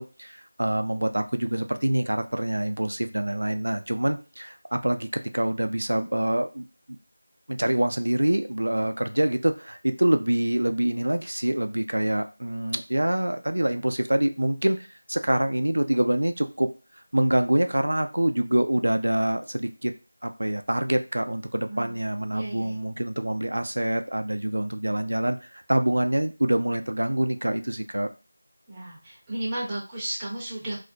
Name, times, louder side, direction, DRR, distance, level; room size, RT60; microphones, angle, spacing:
voice 1, 0.0-5.1 5.3-6.6 7.5-16.7 17.1-19.9 20.2-28.1, right 1 dB, 90° right, 7 dB, 0.3 m, -25 dB
voice 2, 22.3-22.7 28.7-30.8, right 1 dB, 10° right, -8 dB, 0.5 m, -33 dB
2.4 x 2.1 x 2.5 m, 0.32 s
figure-of-eight pair, 175°, 0 cm